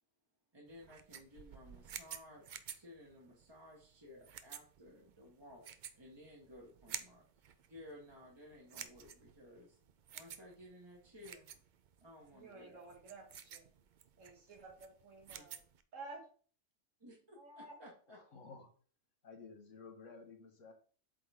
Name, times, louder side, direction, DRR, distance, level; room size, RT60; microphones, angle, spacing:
voice 1, 0.5-9.8 10.1-11.5 12.0-12.8 15.3-15.4 17.0-18.2, left 1 dB, 20° right, -3 dB, 1.2 m, -57 dB
sound 1, 0.7-15.8, right 8 dB, 60° right, 0.5 m, -52 dB
voice 2, 12.3-13.7 14.2-15.6 15.9-16.2 17.3-17.8, right 3 dB, 85° right, 2 dB, 1.9 m, -52 dB
voice 3, 18.1-18.7 19.2-20.7, left 4 dB, 85° left, 4 dB, 1.5 m, -54 dB
7.6 x 3.8 x 3.4 m, 0.42 s
omnidirectional pair, 1.3 m